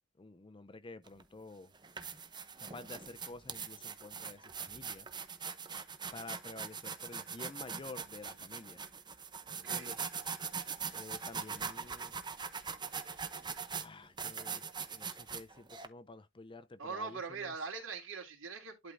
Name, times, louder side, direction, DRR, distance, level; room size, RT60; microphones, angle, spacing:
voice 1, 0.2-1.7 2.6-5.1 6.1-8.8 9.6-10.1 10.9-12.2 13.7-14.6 14.9-17.5, left 3 dB, 25° left, 0.5 m, -50 dB
sound 1, 1.1-1.2 1.7-15.9, right 6 dB, 20° right, 0.8 m, -42 dB
voice 2, 9.6-9.9 16.8-18.9, right 5 dB, 70° right, 3.0 m, -42 dB
11.5 x 3.8 x 3.4 m
head